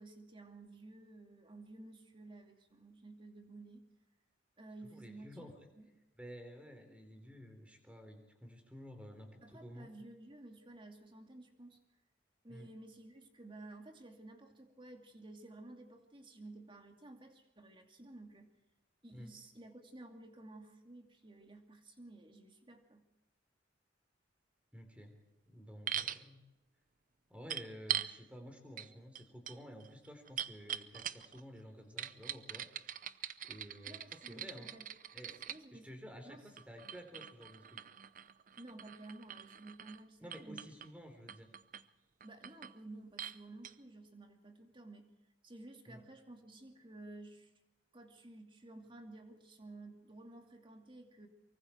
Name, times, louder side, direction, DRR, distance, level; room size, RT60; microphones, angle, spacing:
voice 1, 0.0-3.9 4.6-5.5 5.8-5.9 9.4-11.8 12.4-18.5 19.0-23.0 33.9-34.9 35.5-35.9 36.3-36.4 38.6-40.7 42.2-45.1 45.4-47.5 47.9-51.3, right 2 dB, 30° right, 4 dB, 2.6 m, -53 dB
voice 2, 4.8-5.7 6.2-9.9 12.5-12.7 19.1-19.3 24.7-25.2 25.5-26.4 27.3-32.7 33.4-34.7 35.1-35.4 35.7-37.8 40.2-41.5 45.9-46.0, equal, 5° right, 5 dB, 3.8 m, -52 dB
sound 1, 25.9-26.2 27.5-28.1 28.8-28.9 29.1-31.4 32.0-35.6 36.6-40.0 40.3-40.9 41.3-41.8 42.2-42.8 43.2-43.4 43.6-43.7, right 10 dB, 45° right, 0.7 m, -42 dB
24.0 x 24.0 x 4.6 m, 1.0 s
head